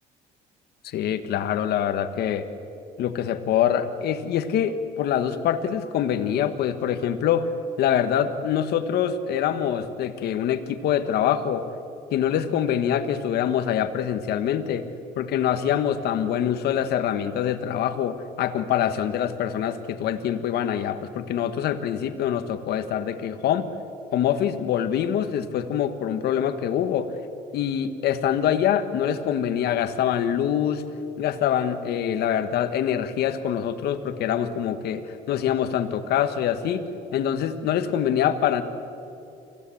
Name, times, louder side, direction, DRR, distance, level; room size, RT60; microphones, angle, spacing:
voice 1, 0.8-2.4 3.0-7.5 7.8-11.6 12.1-14.8 15.2-23.7 24.1-27.1 27.5-30.8 31.2-36.8 37.1-38.6, left 9 dB, 70° left, 9 dB, 1.5 m, -25 dB
25.5 x 16.0 x 8.6 m, 2.7 s
cardioid pair, 110°, 17 cm